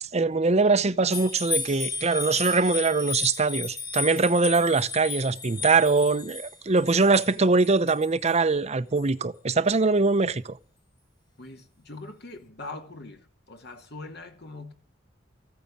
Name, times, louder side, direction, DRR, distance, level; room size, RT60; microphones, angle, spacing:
voice 1, 0.0-10.6, right 3 dB, 35° right, 0.8 m, -22 dB
sound 1, 1.1-8.4 9.0-9.1, left 4 dB, 25° left, 1.3 m, -34 dB
voice 2, 11.4-14.7, left 2 dB, 60° left, 2.4 m, -42 dB
15.0 x 9.3 x 8.6 m
head